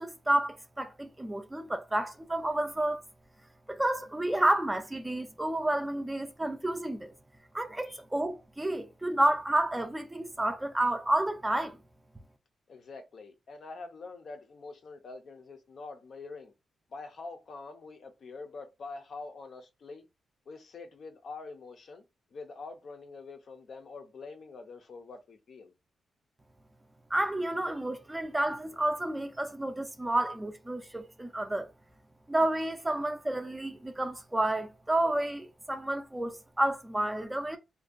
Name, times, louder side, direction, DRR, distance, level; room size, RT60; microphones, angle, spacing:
voice 1, 0.0-3.0 3.7-7.1 7.5-11.8 27.1-31.7 32.3-37.6, right 1 dB, 15° right, 0.4 m, -30 dB
voice 2, 12.7-16.5 16.9-20.0 20.5-22.0 22.3-25.7, left 3 dB, 60° left, 0.5 m, -45 dB
2.5 x 2.1 x 2.4 m
cardioid pair, 90°, 0 cm